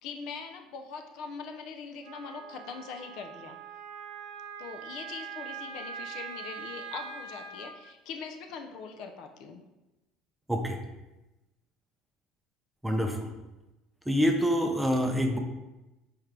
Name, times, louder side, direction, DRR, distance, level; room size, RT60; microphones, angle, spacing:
voice 1, 0.0-3.6 4.6-9.6, left 5 dB, 65° left, 5 dB, 0.5 m, -42 dB
Wind instrument woodwind instrument, 2.0-7.7, right 6 dB, 85° right, 0.6 m, -42 dB
voice 2, 12.8-13.3 14.1-15.4, equal, 5° right, 3 dB, 0.5 m, -26 dB
4.5 x 3.6 x 3.2 m, 1.0 s
supercardioid pair, 120°, 0 cm